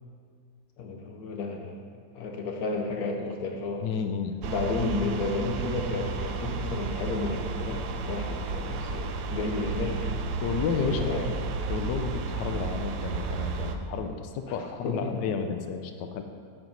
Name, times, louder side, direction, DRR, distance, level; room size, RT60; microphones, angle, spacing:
voice 1, 0.8-1.8 2.1-3.9 4.4-10.1 10.9-11.3 14.6-15.1, left 3 dB, 65° left, 1 dB, 1.3 m, -32 dB
voice 2, 3.8-4.5 10.4-11.1 11.7-16.2, left 6 dB, 85° left, 6 dB, 1.2 m, -31 dB
sound 1, 4.4-13.8, right 4 dB, 75° right, 1.0 m, -32 dB
7.7 x 4.5 x 5.3 m, 2.2 s
omnidirectional pair, 1.8 m